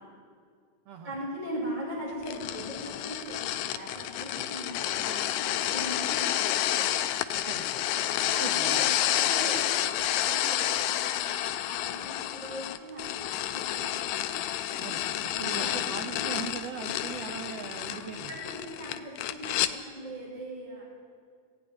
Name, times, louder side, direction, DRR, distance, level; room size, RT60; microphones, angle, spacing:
voice 1, 1.0-6.7 8.3-14.0 15.2-16.4 18.3-20.8, equal, 15° right, -6 dB, 2.8 m, -40 dB
sound 1, 2.2-19.7, left 12 dB, 90° left, 2.3 m, -30 dB
voice 2, 7.3-7.8 8.4-8.9 14.8-18.3, right 7 dB, 90° right, 5 dB, 1.4 m, -40 dB
16.0 x 7.1 x 9.5 m, 2.1 s
omnidirectional pair, 3.8 m